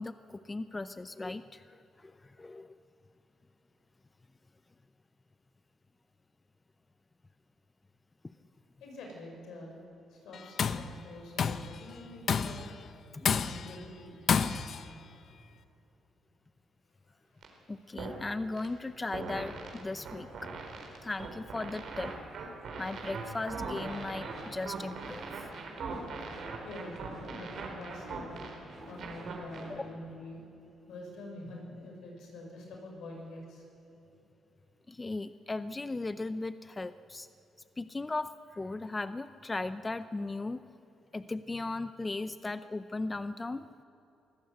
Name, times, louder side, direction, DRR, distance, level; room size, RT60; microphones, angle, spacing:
voice 1, 0.0-2.7 8.2-8.3 13.1-13.3 17.7-20.6 21.0-22.1 22.8-25.5 29.7-29.9 34.9-37.3 37.8-40.6 41.1-43.6, left 2 dB, 20° left, 12 dB, 0.5 m, -37 dB
voice 2, 8.8-9.7 10.1-12.7 13.3-14.2 17.0-17.1 17.5-17.6 18.1-18.2 26.6-28.3 28.8-30.4 30.9-33.6, left 1 dB, 75° left, 0 dB, 6.3 m, -46 dB
Tools, 10.3-10.9 11.4-11.7 12.3-12.7 13.2-13.8 14.3-14.8, left 6 dB, 55° left, 0.7 m, -29 dB
sound 1, 17.4-17.5 18.0-18.2 18.5-18.7 19.1-29.6, right 4 dB, 65° right, 4.1 m, -40 dB
sound 2, 23.5-29.9, right 2 dB, 30° right, 5.1 m, -51 dB
23.5 x 15.0 x 8.0 m, 2.9 s
cardioid pair, 90°, 0 cm